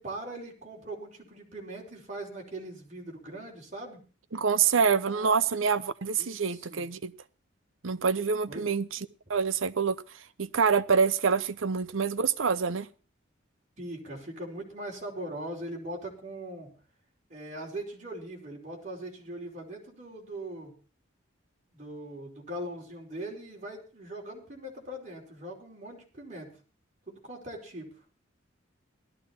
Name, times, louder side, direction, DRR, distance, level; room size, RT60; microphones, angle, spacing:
voice 1, 0.0-4.0 5.0-5.4 6.2-6.9 8.5-8.7 13.8-16.7 17.3-20.7 21.7-26.6 27.1-27.9, right 1 dB, 35° right, 4.7 m, -40 dB
voice 2, 4.3-7.1 7.8-9.0 9.3-10.0 10.4-12.9, right 5 dB, 85° right, 0.8 m, -26 dB
18.0 x 13.0 x 4.4 m
head